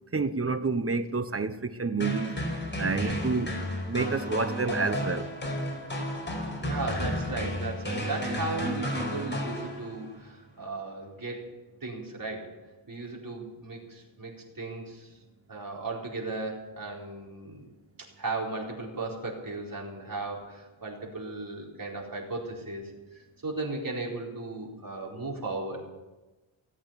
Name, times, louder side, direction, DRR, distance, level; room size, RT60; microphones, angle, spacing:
voice 1, 0.1-2.4 2.8-3.5 3.9-5.3, right 4 dB, 30° right, 1.0 m, -29 dB
sound 1, 2.0-10.1, equal, 25° left, 4.8 m, -32 dB
voice 2, 6.6-11.5 11.8-12.5 12.9-15.2 15.5-17.7 18.0-25.8, right 3 dB, 45° right, 4.5 m, -36 dB
18.0 x 8.5 x 8.4 m
wide cardioid pair, 80°, 47 cm